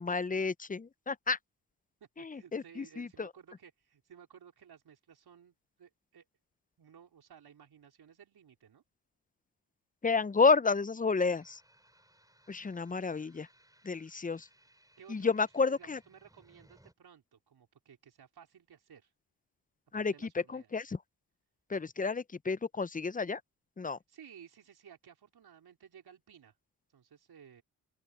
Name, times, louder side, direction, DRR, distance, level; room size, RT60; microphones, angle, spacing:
voice 1, 0.0-1.4 2.2-3.3 10.0-11.6 12.5-13.5 13.8-14.5 15.1-16.0 19.9-20.1 20.5-21.0 21.7-23.4 23.8-24.0, left 4 dB, 20° left, 0.8 m, -30 dB
voice 2, 2.2-6.2 6.8-8.8 15.0-19.1 19.9-20.7 24.1-26.5 26.9-27.6, right 8 dB, 55° right, 4.7 m, -56 dB
sound 1, 11.2-16.9, right 1 dB, 10° right, 7.9 m, -65 dB
open air
supercardioid pair, 50°, 44 cm